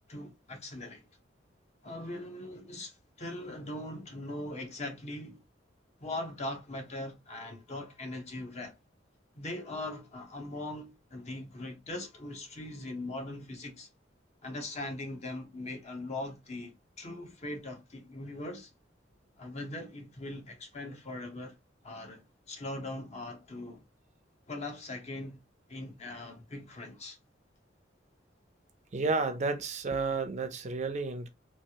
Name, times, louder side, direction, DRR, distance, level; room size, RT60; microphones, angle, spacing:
voice 1, 0.1-1.1 1.8-5.4 6.0-8.8 9.3-13.9 14.4-18.7 19.4-21.6 21.8-23.8 24.5-25.4 25.7-27.2, left 1 dB, 35° left, 0.8 m, -40 dB
voice 2, 28.9-31.3, right 3 dB, 40° right, 0.5 m, -31 dB
3.0 x 2.4 x 2.8 m
head